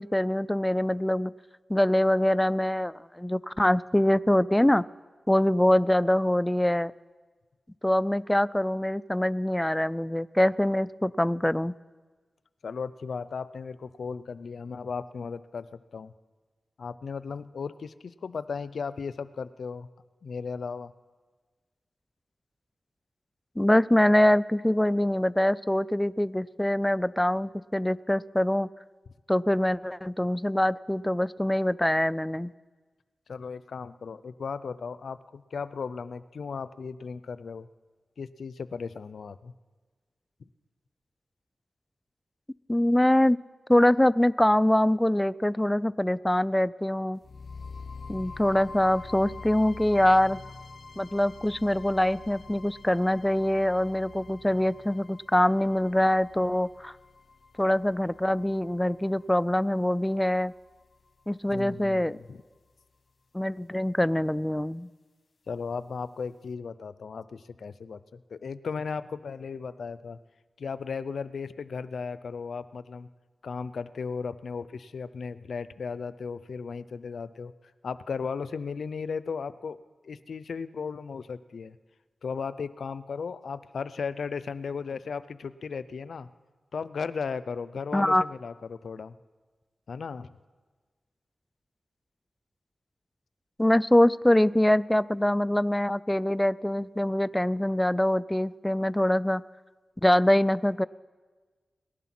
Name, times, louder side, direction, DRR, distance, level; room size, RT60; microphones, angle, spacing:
voice 1, 0.0-1.3 1.7-4.8 5.3-6.9 7.8-11.7 23.6-28.7 29.3-32.5 42.7-43.4 43.7-47.2 48.1-50.4 51.0-56.9 57.6-60.5 61.3-62.2 63.3-64.9 87.9-88.2 93.6-99.4 100.0-100.9, left 1 dB, 10° left, 18 dB, 0.4 m, -24 dB
voice 2, 12.6-16.1 16.8-19.9 20.2-20.9 33.3-37.7 38.2-39.5 61.5-62.4 65.5-70.2 70.6-73.1 73.4-77.5 77.8-79.8 80.0-81.8 82.2-86.3 86.7-89.2 89.9-90.3, left 5 dB, 80° left, 15 dB, 0.5 m, -36 dB
sound 1, 47.2-61.2, left 4 dB, 60° left, 1.1 m, -46 dB
18.5 x 11.0 x 6.0 m, 1.4 s
cardioid pair, 55°, 0 cm